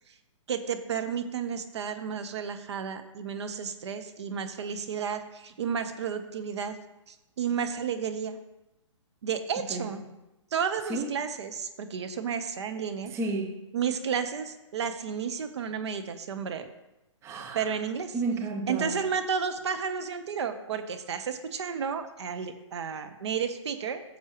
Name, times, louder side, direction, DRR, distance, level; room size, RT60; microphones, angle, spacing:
voice 1, 0.5-6.8 7.1-8.4 9.2-10.0 10.5-13.1 13.7-16.7 17.5-18.2 18.7-24.0, right 7 dB, 60° right, 1.0 m, -32 dB
voice 2, 13.1-13.7 17.2-17.7 18.1-19.0, right 3 dB, 15° right, 0.7 m, -32 dB
14.5 x 7.2 x 3.1 m
figure-of-eight pair, 130°, 16 cm